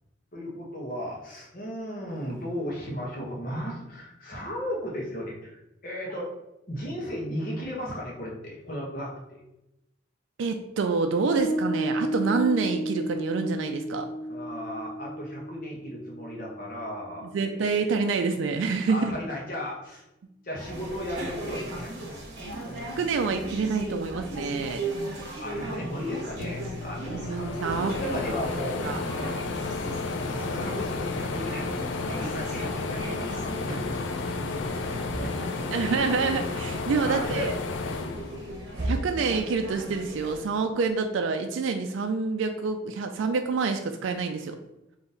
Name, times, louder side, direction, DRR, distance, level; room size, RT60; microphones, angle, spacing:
voice 1, 0.3-6.3 6.7-9.4 14.3-17.9 18.9-20.0 20.4-22.1 22.6-23.4 25.4-29.5 30.3-33.9 34.2-36.0 36.9-37.5, equal, 45° left, -3 dB, 1.1 m, -36 dB
voice 2, 10.4-14.1 17.3-19.1 23.0-24.8 27.1-27.9 28.8-29.0 35.7-37.5 38.8-44.6, right 4 dB, 75° right, 5 dB, 0.4 m, -27 dB
Piano, 11.4-18.1, equal, 10° left, 1.5 m, -33 dB
sound 1, 20.6-40.4, right 1 dB, 55° right, 1.1 m, -37 dB
sound 2, 26.4-39.0 39.4-40.6, left 3 dB, 70° left, 0.4 m, -33 dB
4.0 x 2.9 x 3.9 m, 0.89 s
head